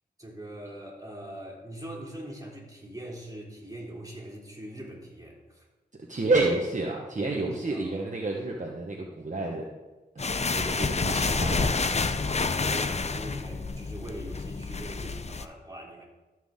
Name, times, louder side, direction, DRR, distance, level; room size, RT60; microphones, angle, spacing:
voice 1, 0.2-5.7 7.1-8.1 12.0-16.0, right 1 dB, 20° right, -2 dB, 3.2 m, -42 dB
voice 2, 6.1-9.7 10.6-11.7, right 2 dB, 45° right, 0 dB, 1.2 m, -29 dB
sound 1, 10.2-15.5, left 4 dB, 40° left, 0.6 m, -28 dB
13.0 x 6.0 x 3.7 m, 1.2 s
cardioid pair, 45°, 17 cm